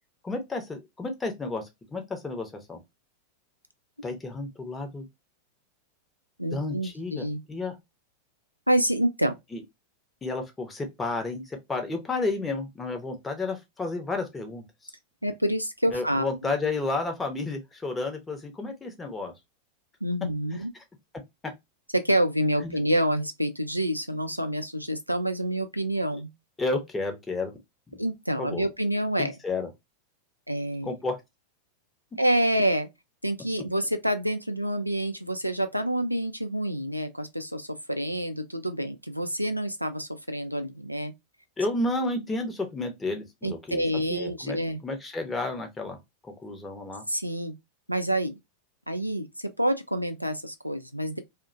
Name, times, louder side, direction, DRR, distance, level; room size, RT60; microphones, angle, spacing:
voice 1, 0.2-2.8 4.0-5.1 6.5-7.8 9.5-9.6 10.2-14.9 15.9-19.3 21.4-21.5 22.6-22.8 26.6-27.5 27.9-28.0 28.4-28.6 29.2-29.7 30.8-31.2 41.6-43.8 44.1-44.6 44.8-46.0 46.4-47.0, left 3 dB, 15° left, 0.7 m, -31 dB
voice 2, 6.4-7.4 8.7-9.3 15.2-16.3 20.0-20.7 21.9-26.3 28.0-29.4 30.5-30.9 32.2-32.9 33.2-41.1 43.4-44.8 47.1-47.5 47.9-48.4 48.9-51.2, right 1 dB, 90° right, 0.3 m, -27 dB
2.4 x 2.1 x 2.4 m
figure-of-eight pair, 90°, 0 cm